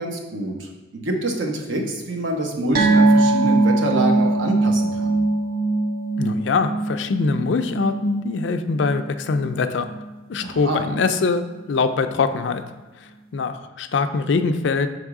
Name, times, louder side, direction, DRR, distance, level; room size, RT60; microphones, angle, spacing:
voice 1, 0.0-5.2 10.4-10.8, right 1 dB, 75° right, 2 dB, 0.9 m, -26 dB
sound 1, 2.7-9.6 9.8-10.1 10.4-10.5, right 2 dB, 45° right, 0.6 m, -21 dB
voice 2, 6.2-9.9 10.3-12.6 13.0-14.9, left 4 dB, 65° left, 9 dB, 0.4 m, -23 dB
6.0 x 3.5 x 4.8 m, 1.2 s
head